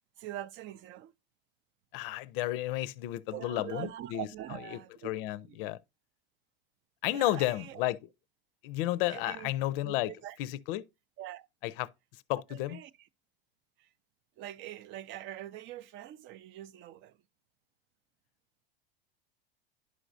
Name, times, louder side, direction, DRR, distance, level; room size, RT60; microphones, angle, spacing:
voice 1, 0.2-1.1 3.3-5.1 5.4-5.6 7.1-7.8 9.1-9.5 9.8-10.4 11.2-11.5 12.5-12.9 13.8-13.9 14.4-17.2, right 13 dB, 40° right, 0.5 m, -43 dB
voice 2, 1.9-4.3 4.7-5.8 7.0-8.0 8.6-10.1 10.4-10.8 11.6-11.9 12.3-12.8, left 15 dB, 65° left, 0.5 m, -32 dB
11.0 x 4.9 x 2.6 m
hypercardioid pair, 100°, 30 cm